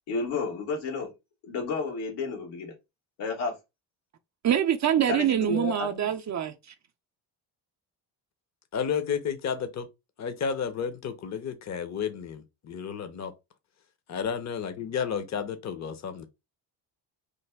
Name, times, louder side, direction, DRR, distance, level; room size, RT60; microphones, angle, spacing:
voice 1, 0.1-1.1 1.4-2.7 3.2-3.5 5.1-6.1, left 4 dB, 80° left, 1.5 m, -31 dB
voice 2, 4.4-6.5, right 10 dB, 40° right, 0.4 m, -25 dB
voice 3, 8.7-9.9 10.2-13.3 14.1-16.3, left 7 dB, 35° left, 0.7 m, -32 dB
3.2 x 2.2 x 3.4 m
supercardioid pair, 65°, 48 cm